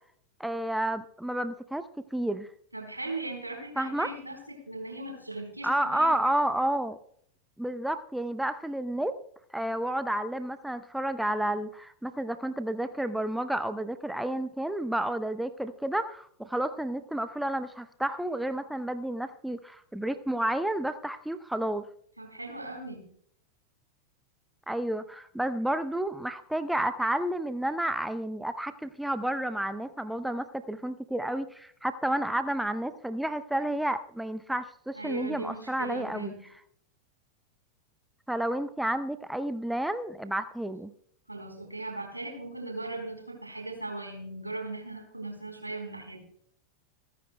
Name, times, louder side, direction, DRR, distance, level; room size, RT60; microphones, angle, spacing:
voice 1, 0.4-2.5 3.8-4.1 5.6-7.0 7.6-9.2 9.5-21.9 24.7-36.3 38.3-40.9, right 1 dB, 5° right, 11 dB, 0.7 m, -31 dB
voice 2, 2.7-6.2 22.2-23.1 34.9-36.5 41.3-46.3, right 2 dB, 85° right, 3 dB, 4.1 m, -38 dB
27.5 x 10.0 x 2.2 m, 0.62 s
figure-of-eight pair, 90°, 0 cm